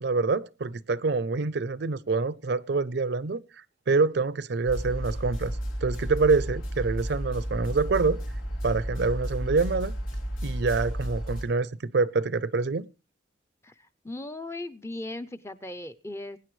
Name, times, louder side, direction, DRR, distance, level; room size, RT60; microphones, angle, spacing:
voice 1, 0.0-3.4 3.9-5.5 5.8-8.2 8.6-9.9 10.4-12.9, right 4 dB, 55° right, 0.6 m, -26 dB
sound 1, 4.6-11.4, equal, 90° left, 3.1 m, -32 dB
voice 2, 13.6-16.4, left 2 dB, 15° left, 0.5 m, -38 dB
22.5 x 9.5 x 3.2 m
head